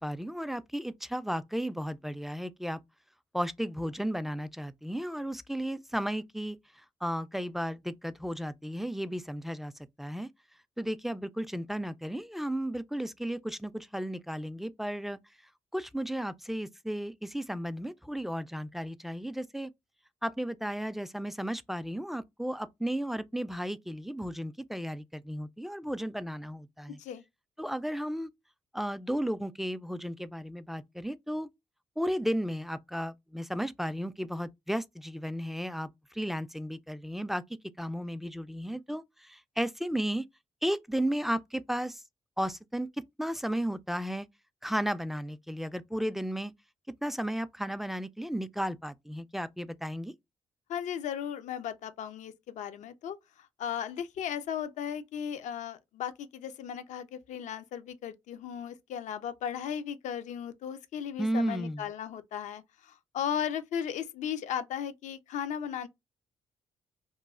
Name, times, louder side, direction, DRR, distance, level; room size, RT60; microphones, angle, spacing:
voice 1, 0.0-2.8 3.3-6.6 7.0-9.7 10.0-10.3 10.8-15.2 15.7-19.7 20.2-27.0 27.6-28.3 28.7-31.5 32.0-37.4 37.8-40.2 40.6-42.0 42.4-42.9 43.2-44.3 44.6-46.5 47.0-50.1 61.2-61.9, equal, ahead, 0.3 m, -34 dB
voice 2, 50.7-53.2 53.6-65.9, left 9 dB, 70° left, 0.4 m, -36 dB
3.0 x 2.3 x 2.3 m
hypercardioid pair, 50°, 13 cm